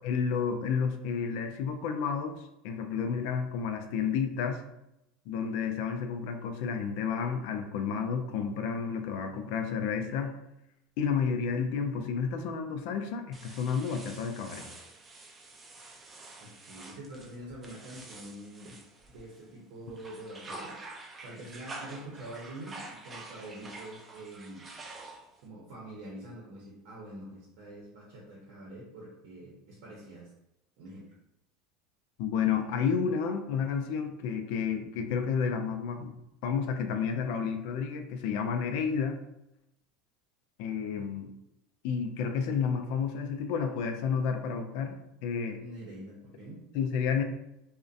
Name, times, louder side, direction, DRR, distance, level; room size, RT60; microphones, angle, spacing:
voice 1, 0.0-4.6 5.3-10.4 11.0-14.7 32.2-36.1 36.4-39.2 40.6-41.3 41.8-45.0 45.2-45.6 46.7-47.2, left 6 dB, 65° left, 6 dB, 0.3 m, -31 dB
sound 1, 13.3-19.5 19.9-25.5, right 2 dB, 20° right, 0.3 m, -47 dB
voice 2, 16.4-18.8 19.1-24.7 25.4-30.3 30.8-31.1 45.6-46.6, right 1 dB, 65° right, -4 dB, 0.7 m, -45 dB
2.5 x 2.1 x 2.4 m, 0.85 s
supercardioid pair, 130°, 0 cm